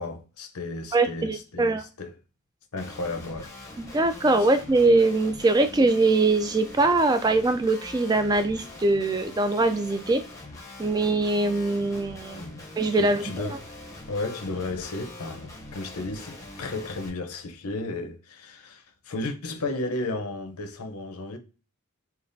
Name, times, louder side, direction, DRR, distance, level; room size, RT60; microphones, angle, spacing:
voice 1, 0.0-2.1 2.7-3.5 4.4-4.5 12.3-12.6 13.0-13.7 14.1-21.4, left 2 dB, 80° left, 0.7 m, -34 dB
voice 2, 0.9-1.8 3.8-10.2 10.8-12.4 12.8-13.3, right 2 dB, 15° right, 0.3 m, -22 dB
Guitar, 2.8-17.1, left 2 dB, 15° left, 0.7 m, -43 dB
5.1 x 2.4 x 2.6 m
head